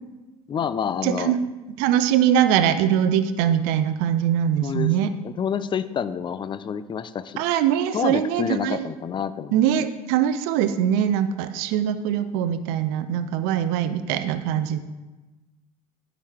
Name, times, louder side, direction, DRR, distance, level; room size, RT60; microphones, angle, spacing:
voice 1, 0.5-1.3 4.6-7.4 7.9-9.6, left 7 dB, 25° left, 15 dB, 0.5 m, -28 dB
voice 2, 1.0-1.4 1.8-5.1 7.4-8.9 9.5-14.8, right 10 dB, 55° right, 11 dB, 0.7 m, -22 dB
10.0 x 5.1 x 6.2 m, 1.2 s
figure-of-eight pair, 70°, 19 cm